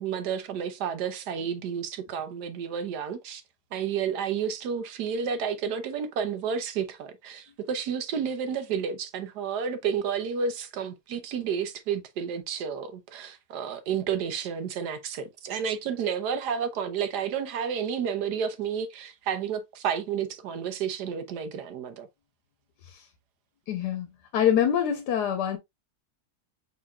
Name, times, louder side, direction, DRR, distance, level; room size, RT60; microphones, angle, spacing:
voice 1, 0.0-3.4 3.7-22.1, right 7 dB, 85° right, 1.4 m, -31 dB
voice 2, 23.7-25.6, left 9 dB, 90° left, 1.4 m, -25 dB
5.3 x 4.1 x 2.3 m
omnidirectional pair, 1.7 m